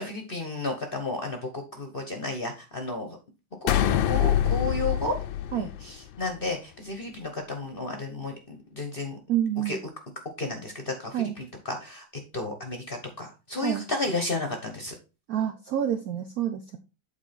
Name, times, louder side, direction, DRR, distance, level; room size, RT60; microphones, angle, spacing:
voice 1, 0.0-3.2 3.6-5.2 5.5-9.2 9.6-9.8 10.4-12.0 12.3-14.9, left 2 dB, 35° left, 5 dB, 1.0 m, -32 dB
Terminator slam, 3.7-6.2, left 11 dB, 75° left, 1.3 m, -25 dB
voice 2, 9.3-9.8 11.1-11.3 13.6-13.8 15.3-16.8, right 10 dB, 65° right, 6 dB, 0.9 m, -28 dB
8.2 x 4.3 x 4.3 m, 0.30 s
omnidirectional pair, 2.3 m